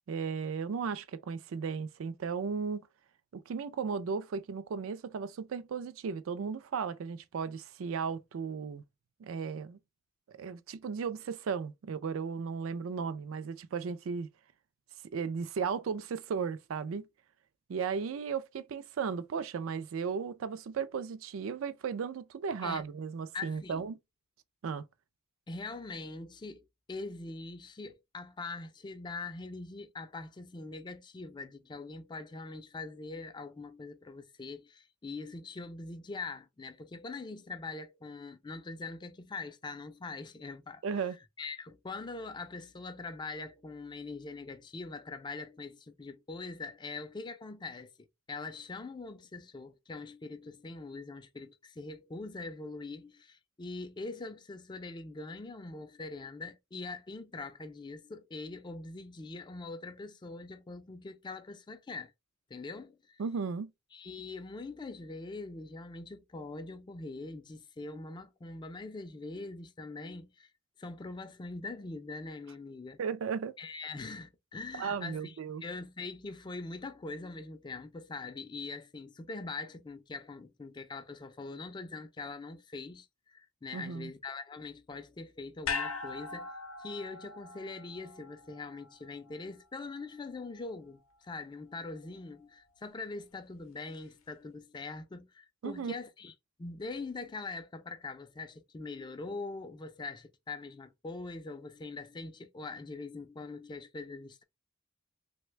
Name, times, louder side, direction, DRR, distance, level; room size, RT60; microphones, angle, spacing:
voice 1, 0.1-2.8 3.3-8.8 9.2-9.8 10.3-14.3 15.1-17.0 17.7-24.0 24.6-24.8 40.8-41.2 63.2-63.7 73.0-73.5 74.8-75.6 83.7-84.1 95.6-96.0, right 6 dB, 70° right, 0.4 m, -35 dB
voice 2, 23.3-23.9 25.5-40.8 41.4-62.1 62.5-63.2 63.9-70.5 70.8-73.0 73.6-86.5 86.8-96.3 96.6-104.4, left 3 dB, 20° left, 0.3 m, -43 dB
sound 1, 85.6-90.0 90.3-90.4, left 5 dB, 75° left, 0.6 m, -40 dB
3.2 x 2.2 x 3.0 m
head